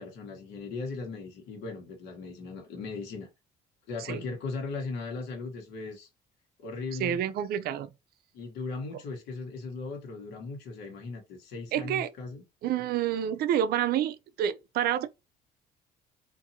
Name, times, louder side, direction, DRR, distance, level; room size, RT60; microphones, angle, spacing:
voice 1, 0.0-3.3 3.9-6.1 6.6-7.2 8.3-12.4, left 4 dB, 90° left, 1.2 m, -38 dB
voice 2, 7.0-7.9 11.7-12.1 12.6-15.1, right 10 dB, 65° right, 0.4 m, -28 dB
2.7 x 2.5 x 2.7 m
cardioid pair, 110°, 17 cm